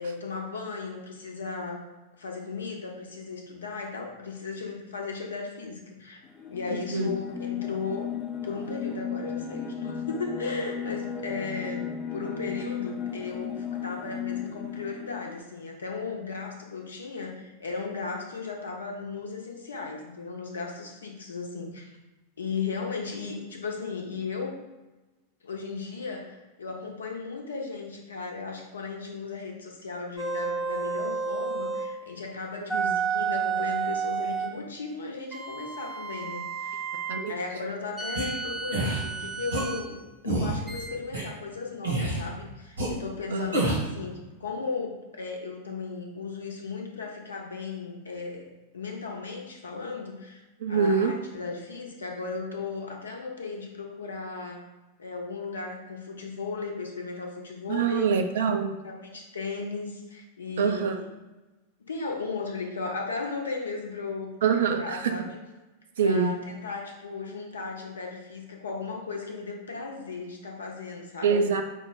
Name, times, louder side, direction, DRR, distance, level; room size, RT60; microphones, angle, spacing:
voice 1, 0.0-1.9 2.2-6.2 6.5-8.1 8.4-21.9 22.4-24.6 25.4-36.9 37.3-50.4 50.7-54.7 55.0-58.1 58.8-60.9 61.8-65.4 66.0-71.4, left 4 dB, 70° left, 1 dB, 0.7 m, -36 dB
sound 1, 6.2-15.4, left 7 dB, 25° left, 0.3 m, -35 dB
sound 2, 30.2-31.9 32.7-34.6 35.3-37.2 38.0-39.8 40.7-40.9, right 5 dB, ahead, 0.7 m, -31 dB
sound 3, 38.2-38.3 38.7-39.0 39.5-39.6 40.2-40.6 41.1-41.2 41.8-42.2 42.8-42.9 43.5-43.9, right 2 dB, 80° right, 1.3 m, -27 dB
voice 2, 50.6-51.2 57.7-58.8 60.6-60.9 64.4-65.2 66.0-66.4 71.2-71.6, right 5 dB, 60° right, 6 dB, 0.4 m, -25 dB
5.2 x 2.1 x 3.7 m, 1.1 s
figure-of-eight pair, 90°, 0 cm